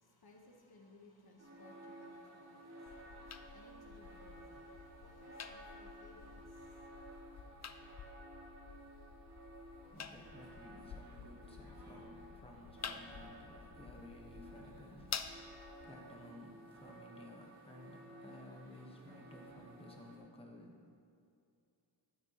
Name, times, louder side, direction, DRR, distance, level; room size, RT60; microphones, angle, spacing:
voice 1, 0.0-7.3, left 2 dB, 55° left, 1 dB, 1.2 m, -63 dB
sound 1, 1.4-20.2, right 1 dB, 35° right, 2.2 m, -55 dB
sound 2, 2.9-15.9, left 6 dB, 40° left, 0.4 m, -50 dB
voice 2, 9.8-21.0, left 1 dB, 10° left, 0 dB, 1.1 m, -55 dB
12.5 x 9.3 x 3.0 m, 2.5 s
wide cardioid pair, 125°, 45 cm